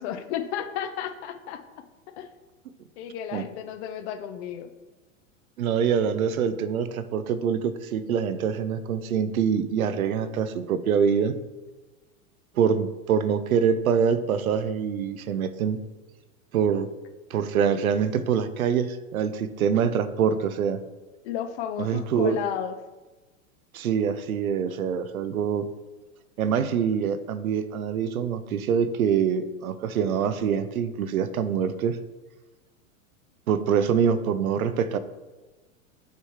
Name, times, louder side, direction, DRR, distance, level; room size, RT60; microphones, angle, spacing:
voice 1, 0.0-1.6 2.2-2.3 3.0-4.7 21.2-22.7, left 9 dB, 50° left, 9 dB, 0.7 m, -32 dB
voice 2, 5.6-11.4 12.6-15.8 16.5-16.9 17.3-20.8 21.8-22.4 23.7-25.7 26.4-32.0 33.5-35.0, right 7 dB, 90° right, 12 dB, 0.6 m, -25 dB
6.7 x 3.2 x 4.7 m, 1.2 s
hypercardioid pair, 110°, 41 cm